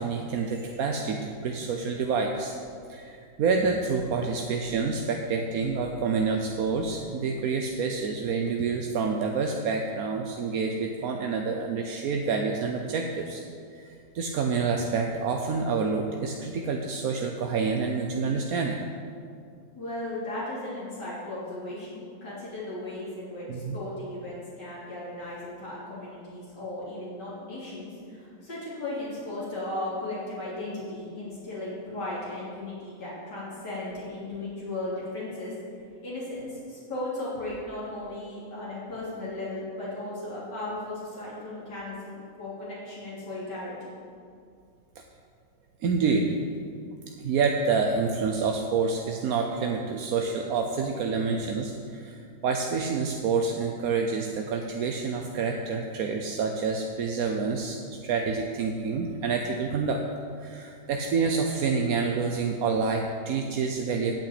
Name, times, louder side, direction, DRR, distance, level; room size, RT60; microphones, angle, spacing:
voice 1, 0.0-2.5 2.9-13.4 13.7-18.8 23.5-23.8 45.8-46.4 47.2-60.0 60.4-64.1, right 5 dB, 60° right, 3 dB, 1.0 m, -28 dB
voice 2, 19.8-35.5 36.0-43.9, left 2 dB, 60° left, -9 dB, 3.8 m, -36 dB
8.9 x 8.7 x 8.3 m, 2.4 s
omnidirectional pair, 2.0 m